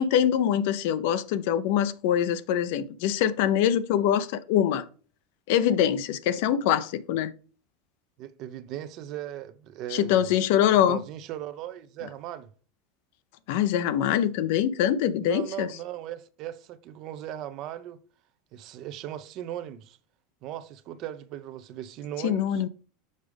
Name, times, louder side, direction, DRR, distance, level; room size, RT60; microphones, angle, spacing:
voice 1, 0.0-4.9 5.5-7.3 9.9-11.0 13.5-15.7 22.2-22.7, left 10 dB, 70° left, 0.6 m, -24 dB
voice 2, 8.2-12.5 15.2-18.0 18.5-20.0 20.4-22.6, right 12 dB, 50° right, 0.7 m, -38 dB
6.5 x 5.0 x 3.4 m
supercardioid pair, 130°, 0 cm